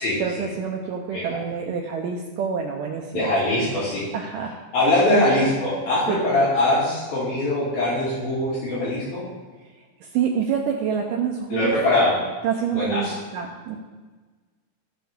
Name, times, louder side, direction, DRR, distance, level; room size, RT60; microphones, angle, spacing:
voice 1, 0.2-3.3 4.1-4.5 5.1-5.2 6.1-6.2 10.0-11.8 12.4-13.8, right 7 dB, 75° right, 1 dB, 2.0 m, -27 dB
voice 2, 3.1-4.1 4.7-9.2 11.5-12.1 12.7-13.1, left 1 dB, 65° left, -9 dB, 4.1 m, -22 dB
15.0 x 6.0 x 3.6 m, 1.3 s
omnidirectional pair, 4.6 m